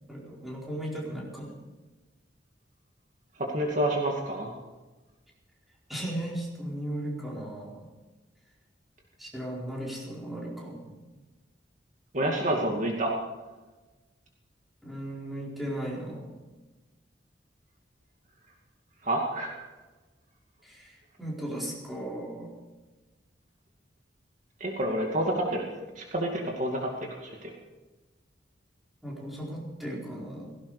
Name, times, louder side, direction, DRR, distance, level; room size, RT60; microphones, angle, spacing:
voice 1, 0.1-1.6 5.9-7.8 9.2-10.9 14.8-16.4 20.6-22.6 29.0-30.6, right 1 dB, ahead, -5 dB, 4.5 m, -36 dB
voice 2, 3.4-4.5 12.1-13.1 19.0-19.6 24.6-25.6 26.0-26.9 27.2-27.5, right 1 dB, 45° right, 0 dB, 2.3 m, -28 dB
17.0 x 17.0 x 4.9 m, 1.2 s
head